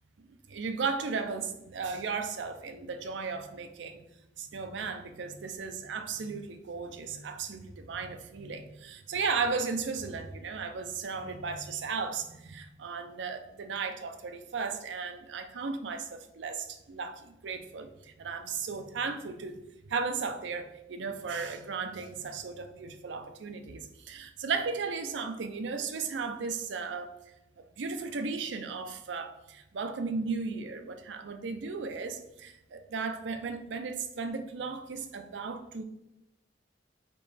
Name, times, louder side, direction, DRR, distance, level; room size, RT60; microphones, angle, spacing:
voice 1, 0.5-4.0 4.4-27.1 27.8-35.8, right 4 dB, 85° right, 7 dB, 0.5 m, -35 dB
4.4 x 3.0 x 3.3 m, 0.90 s
head